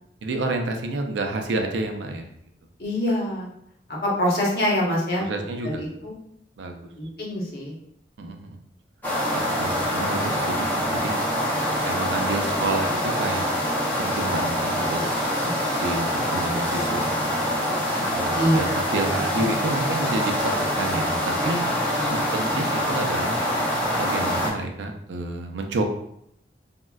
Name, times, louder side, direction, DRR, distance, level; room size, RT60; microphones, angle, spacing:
voice 1, 0.2-2.3 5.2-5.8 6.6-6.9 8.2-8.6 9.3-11.2 11.8-13.5 14.0-15.0 15.7-17.4 18.1-21.6 22.1-23.4 24.0-25.8, right 2 dB, 90° right, 4 dB, 0.4 m, -29 dB
voice 2, 2.8-3.5 4.0-5.2 5.6-6.1 7.0-7.7 15.4-15.7 18.4-18.8 21.9-22.3, equal, 55° left, -4 dB, 0.8 m, -25 dB
sound 1, 9.0-24.5, equal, 10° left, 0.5 m, -25 dB
3.6 x 2.1 x 2.3 m, 0.74 s
head